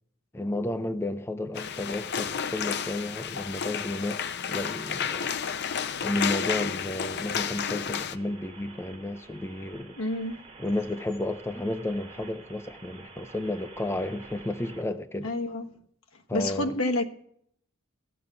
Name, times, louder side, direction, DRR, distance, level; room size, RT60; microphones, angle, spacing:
voice 1, 0.3-5.4 6.0-10.0 10.6-15.3 16.3-16.8, left 1 dB, 10° left, 0.4 m, -32 dB
sound 1, 1.5-8.2, left 7 dB, 55° left, 0.6 m, -31 dB
sound 2, 8.1-14.8, right 3 dB, 25° right, 2.3 m, -49 dB
voice 2, 10.0-10.4 15.2-15.7 16.3-17.0, left 1 dB, 85° left, 1.3 m, -28 dB
15.0 x 6.9 x 7.8 m
head